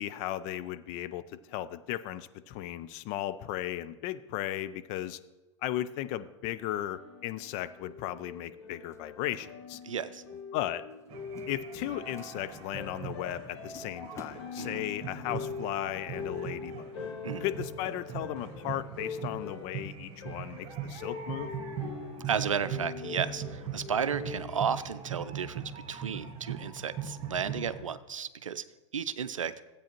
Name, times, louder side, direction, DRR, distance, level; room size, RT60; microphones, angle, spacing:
voice 1, 0.0-5.2 5.6-9.8 10.5-10.8 11.5-16.9 17.4-21.5, left 13 dB, 45° left, 13 dB, 0.5 m, -36 dB
sound 1, 6.9-24.5, left 5 dB, 65° left, 1.9 m, -43 dB
sound 2, 8.9-9.9 10.1-10.4 10.9-11.1 11.3-12.9 13.3-13.4 13.7-15.1, left 4 dB, 15° left, 1.0 m, -52 dB
voice 2, 9.8-10.2 14.6-14.9 17.2-17.5 22.2-28.6 28.9-29.5, right 7 dB, 85° right, 13 dB, 0.5 m, -33 dB
sound 3, 11.1-27.8, right 7 dB, 35° right, 1.7 m, -41 dB
13.5 x 8.4 x 3.0 m, 1.1 s
figure-of-eight pair, 95°, 16 cm